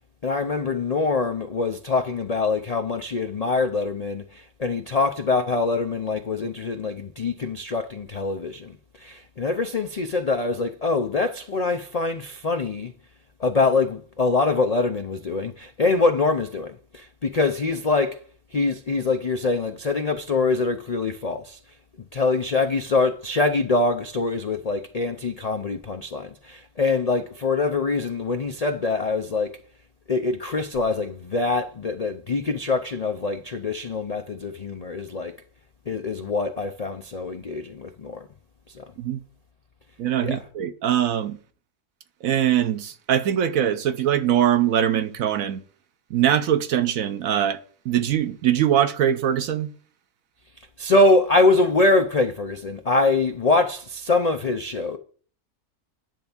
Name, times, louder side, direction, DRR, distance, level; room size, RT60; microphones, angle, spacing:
voice 1, 0.2-12.9 13.4-18.2 18.5-21.6 22.1-29.5 30.1-35.3 35.9-38.3 38.7-38.8 40.2-40.4 50.8-55.0, left 3 dB, 70° left, 0.3 m, -24 dB
voice 2, 40.0-41.4 42.2-45.6 46.1-47.6 47.8-49.7, right 10 dB, 70° right, 1.1 m, -22 dB
10.5 x 3.5 x 7.1 m
omnidirectional pair, 1.6 m